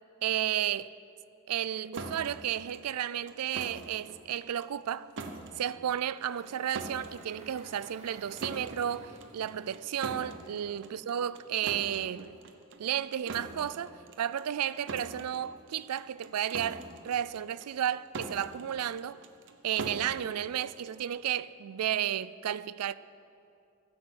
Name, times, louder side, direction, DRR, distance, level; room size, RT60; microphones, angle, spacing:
voice 1, 0.2-0.9 1.5-5.1 5.6-12.4 12.8-19.2 19.6-22.9, right 10 dB, 85° right, 0.4 m, -33 dB
sound 1, 1.9-21.3, right 2 dB, 60° right, 0.9 m, -44 dB
Engine, 6.0-11.2, right 1 dB, 30° right, 1.4 m, -54 dB
15.0 x 8.6 x 7.7 m
head